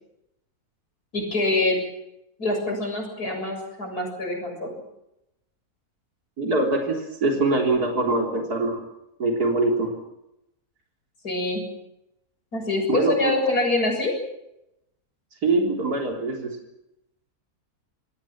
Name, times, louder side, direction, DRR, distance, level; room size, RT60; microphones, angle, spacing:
voice 1, 1.1-1.8 2.4-4.7 11.2-11.6 12.5-14.1, left 2 dB, 80° left, 3 dB, 7.6 m, -25 dB
voice 2, 6.4-8.8 9.2-9.9 12.9-13.3 15.4-16.6, right 2 dB, 85° right, 1 dB, 4.3 m, -23 dB
27.0 x 17.5 x 7.4 m, 0.85 s
omnidirectional pair, 1.6 m